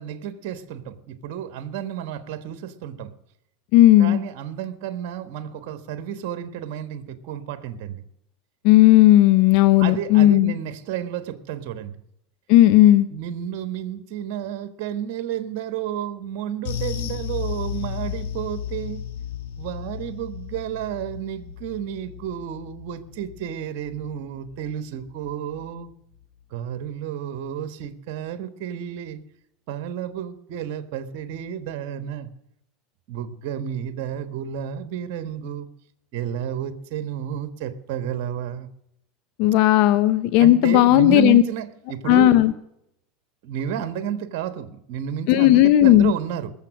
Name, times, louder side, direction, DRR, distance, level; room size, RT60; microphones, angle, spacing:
voice 1, 0.0-3.1 4.0-8.0 9.8-11.9 13.1-19.0 19.6-25.9 26.5-29.2 29.7-32.3 33.1-35.7 36.1-38.7 40.4-42.4 43.4-46.5, right 9 dB, 65° right, 10 dB, 1.3 m, -31 dB
voice 2, 3.7-4.2 8.6-10.5 12.5-13.1 39.4-41.4 42.1-42.5 45.3-46.1, left 14 dB, 65° left, 12 dB, 0.7 m, -14 dB
sound 1, 16.6-25.3 25.6-25.8 26.2-26.3, left 9 dB, 80° left, 2.1 m, -34 dB
20.0 x 7.4 x 6.1 m, 0.78 s
supercardioid pair, 105°, 0 cm